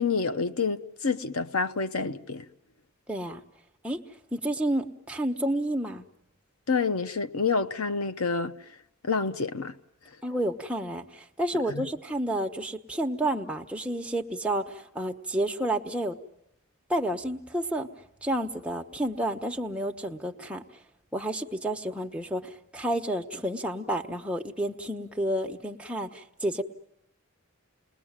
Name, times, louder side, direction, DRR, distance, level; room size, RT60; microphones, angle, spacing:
voice 1, 0.0-2.5 6.7-8.5 9.0-9.7, left 4 dB, 85° left, 0.9 m, -28 dB
voice 2, 3.1-3.4 3.8-4.0 4.3-6.0 10.2-16.2 16.9-17.9 18.2-20.6 21.1-26.6, right 1 dB, 5° right, 1.2 m, -30 dB
29.5 x 20.5 x 7.4 m
head